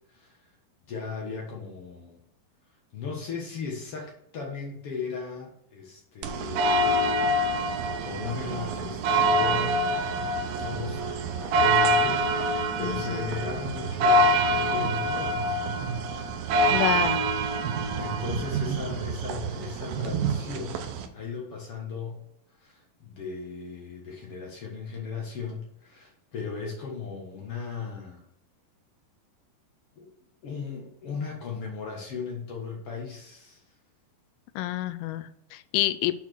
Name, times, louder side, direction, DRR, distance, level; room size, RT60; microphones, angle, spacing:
voice 1, 0.1-0.4 0.9-2.2 2.9-11.0 11.3-15.7 18.0-22.2 22.5-28.2 29.9-30.1 30.4-33.6, left 5 dB, 50° left, -1 dB, 1.8 m, -37 dB
sound 1, 6.2-21.1, right 1 dB, 80° right, 2.5 m, -26 dB
voice 2, 12.8-13.2 16.7-17.2 34.6-36.2, left 14 dB, 80° left, 12 dB, 2.2 m, -28 dB
7.1 x 4.4 x 6.0 m, 0.75 s
omnidirectional pair, 4.3 m